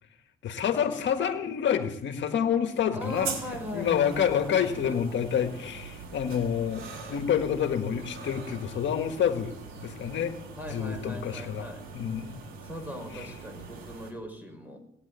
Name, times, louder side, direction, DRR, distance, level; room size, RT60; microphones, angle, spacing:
voice 1, 0.4-3.3 3.7-9.5 9.8-10.3 10.7-11.7 11.9-12.4 13.1-13.3, left 8 dB, 65° left, 7 dB, 1.7 m, -28 dB
voice 2, 2.9-5.0 10.6-11.9 12.6-14.8, left 1 dB, 10° right, 5 dB, 5.4 m, -39 dB
sound 1, 3.0-14.1, right 4 dB, 85° right, 4.1 m, -42 dB
18.0 x 9.7 x 8.2 m, 0.72 s
cardioid pair, 90°, 20 cm